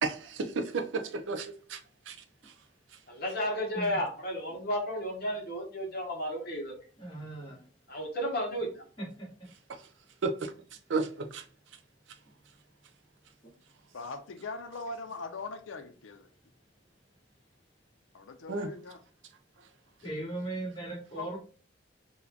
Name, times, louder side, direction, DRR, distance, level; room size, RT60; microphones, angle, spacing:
voice 1, 0.0-2.2 2.4-2.5 9.7-9.8 10.2-10.5 10.9-11.4 18.5-18.7, right 4 dB, 70° right, 0.5 m, -33 dB
voice 2, 3.1-6.7 7.9-8.8, equal, 50° left, 0.8 m, -33 dB
voice 3, 7.0-7.6 20.0-21.4, right 2 dB, 25° left, 1.4 m, -38 dB
voice 4, 13.9-16.3 18.1-19.0 21.2-21.4, left 3 dB, 85° left, 0.5 m, -41 dB
3.9 x 2.2 x 2.8 m
head